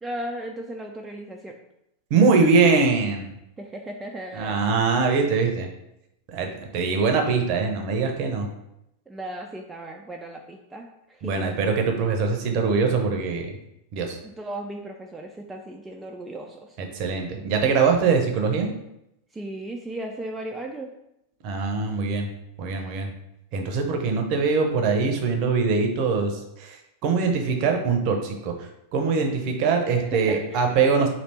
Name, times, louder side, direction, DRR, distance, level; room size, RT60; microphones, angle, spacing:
voice 1, 0.0-1.6 3.6-4.6 4.9-5.0 9.1-11.6 14.2-17.3 19.3-20.9 30.0-30.6, right 1 dB, 10° right, 1 dB, 0.4 m, -36 dB
voice 2, 2.1-3.3 4.3-5.7 6.3-8.5 11.2-13.5 13.9-14.2 16.9-18.7 21.4-22.3 22.6-23.1 23.5-28.5 28.9-31.1, right 4 dB, 45° right, 3 dB, 0.7 m, -22 dB
3.3 x 2.8 x 4.2 m, 0.83 s
figure-of-eight pair, 90°, 0 cm